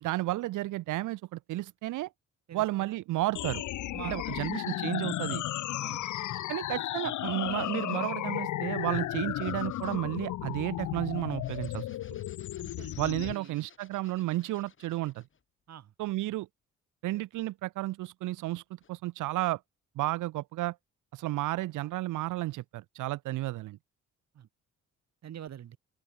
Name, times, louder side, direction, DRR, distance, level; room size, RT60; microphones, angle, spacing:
voice 1, 0.0-2.1 2.5-3.6 4.0-5.4 6.5-11.9 13.0-15.2 16.0-16.5 17.0-18.6 18.9-19.6 20.0-20.8 21.1-23.8, right 17 dB, 80° right, 0.8 m, -32 dB
voice 2, 2.5-3.0 3.9-4.4 5.8-6.0 12.6-13.6 15.7-15.9 24.3-24.5 25.2-25.8, right 10 dB, 60° right, 2.3 m, -46 dB
sound 1, 3.3-13.3, left 14 dB, 75° left, 1.4 m, -34 dB
sound 2, 4.2-5.0 5.8-6.6 7.5-8.3 9.4-10.1 11.4-15.4 18.8-18.9, left 6 dB, 40° left, 7.9 m, -59 dB
cardioid pair, 90°, 30 cm